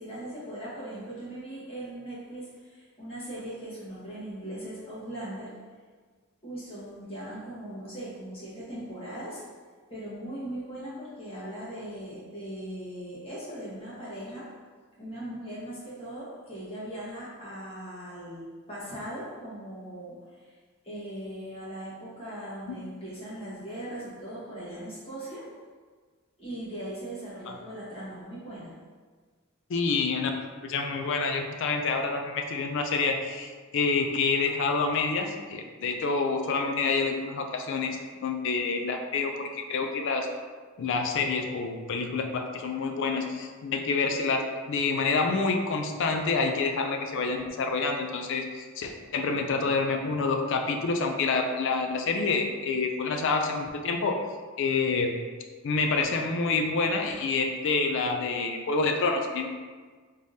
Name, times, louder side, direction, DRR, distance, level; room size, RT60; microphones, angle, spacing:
voice 1, 0.0-5.6 6.4-9.4 9.9-14.5 15.0-20.5 20.8-25.5 26.4-28.8, right 1 dB, 25° left, -9 dB, 1.3 m, -39 dB
voice 2, 29.7-30.3 30.6-40.3 40.8-54.2 54.6-55.1 55.6-59.5, left 4 dB, 60° left, 4 dB, 0.4 m, -27 dB
3.6 x 3.4 x 2.7 m, 1.5 s
head